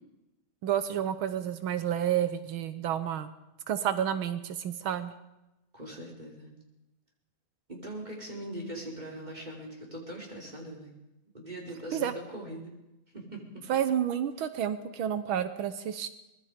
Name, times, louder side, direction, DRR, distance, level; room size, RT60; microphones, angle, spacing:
voice 1, 0.6-3.3 3.7-5.1 11.9-12.2 13.7-16.1, right 9 dB, 85° right, 11 dB, 1.1 m, -30 dB
voice 2, 5.7-6.5 7.7-10.9 11.3-12.7 13.1-13.6, right 1 dB, 10° right, -1 dB, 5.1 m, -41 dB
24.5 x 20.5 x 5.1 m, 0.96 s
omnidirectional pair, 3.7 m